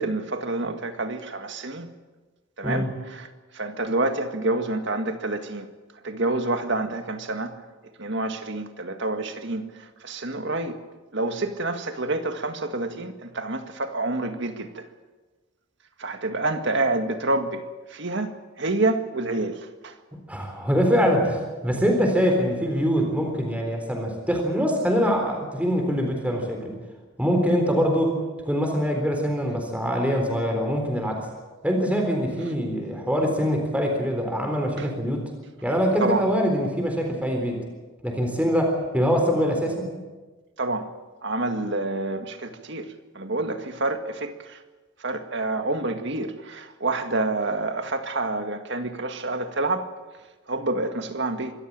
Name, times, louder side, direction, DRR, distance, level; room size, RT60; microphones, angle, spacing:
voice 1, 0.0-1.9 2.6-3.3 3.5-5.7 6.0-7.6 8.0-9.6 10.0-10.8 11.1-14.9 16.0-17.6 17.9-18.3 18.6-19.9 34.8-34.9 36.0-36.2 40.6-40.9 41.2-42.9 43.2-44.6 45.0-49.9 50.5-51.5, right 2 dB, 65° right, 1.8 m, -28 dB
voice 2, 20.3-26.8 27.2-28.2 28.5-31.3 31.6-35.3 35.6-37.6 38.0-39.9, equal, 5° right, 3.9 m, -24 dB
25.0 x 14.0 x 8.8 m
head